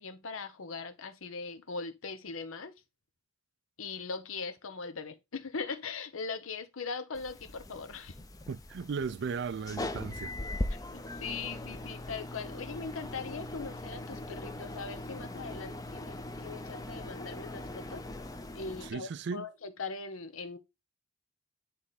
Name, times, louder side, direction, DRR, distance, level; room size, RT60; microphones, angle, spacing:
voice 1, 0.0-2.7 3.8-8.1 10.7-18.0 18.5-20.6, left 4 dB, 85° left, 0.9 m, -40 dB
sound 1, 7.1-18.9, left 1 dB, 15° left, 0.5 m, -40 dB
voice 2, 8.5-10.3 18.8-19.5, right 5 dB, 55° right, 0.4 m, -36 dB
9.4 x 3.4 x 4.1 m
head